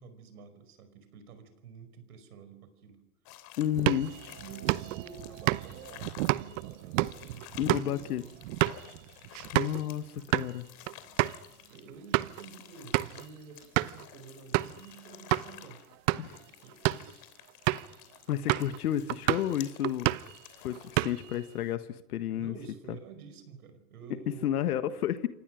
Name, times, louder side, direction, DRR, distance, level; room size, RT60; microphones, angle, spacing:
voice 1, 0.0-3.0 3.8-8.3 11.7-15.8 16.1-17.2 22.3-24.9, right 6 dB, 80° right, 10 dB, 5.4 m, -50 dB
sound 1, 3.3-21.4, left 14 dB, 50° left, 3.3 m, -52 dB
voice 2, 3.6-4.1 7.6-8.2 9.5-10.7 16.2-16.4 18.3-20.1 20.6-22.5 24.4-25.3, left 11 dB, 75° left, 11 dB, 1.6 m, -31 dB
sound 2, 3.7-8.8, right 7 dB, 30° right, 4.3 m, -54 dB
sound 3, 3.8-9.8 10.2-10.5 10.9-11.0 11.2-11.4 11.9-12.4 12.9-13.2 13.8-14.0 14.5-14.8 15.3-15.5 15.9-16.4 16.7-17.1 17.7-18.0 18.5-18.8 19.1-19.5 19.8-20.4 20.7-21.4, right 19 dB, 55° right, 1.0 m, -29 dB
28.0 x 25.0 x 6.3 m, 0.90 s
hypercardioid pair, 110°, 44 cm